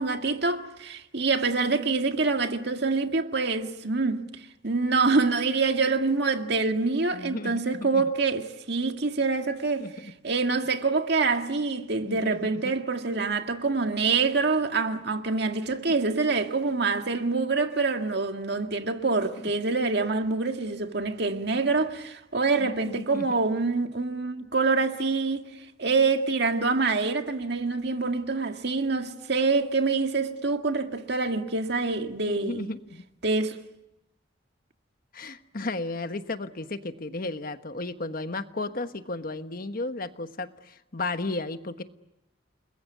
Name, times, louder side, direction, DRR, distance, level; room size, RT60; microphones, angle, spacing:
voice 1, 0.0-4.3 4.6-25.5 25.8-32.7 33.2-33.6, right 4 dB, 60° right, 1.9 m, -26 dB
voice 2, 7.1-8.0 9.8-10.1 12.1-12.6 19.4-19.5 22.6-23.3 32.2-33.0 35.1-41.8, left 2 dB, 50° left, 1.3 m, -34 dB
29.5 x 21.5 x 9.4 m
head